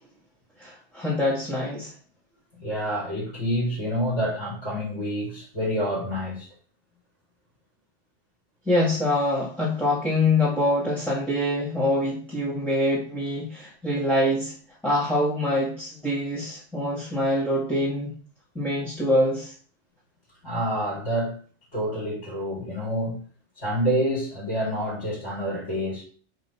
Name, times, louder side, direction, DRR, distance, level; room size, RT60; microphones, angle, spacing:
voice 1, 0.6-1.9 8.7-14.5 14.8-18.2 18.6-19.5, left 1 dB, ahead, -6 dB, 1.9 m, -25 dB
voice 2, 2.5-6.5 20.4-21.4 21.7-23.2 23.6-26.0, equal, 85° left, -5 dB, 4.8 m, -28 dB
6.2 x 5.4 x 5.6 m, 0.43 s
omnidirectional pair, 1.2 m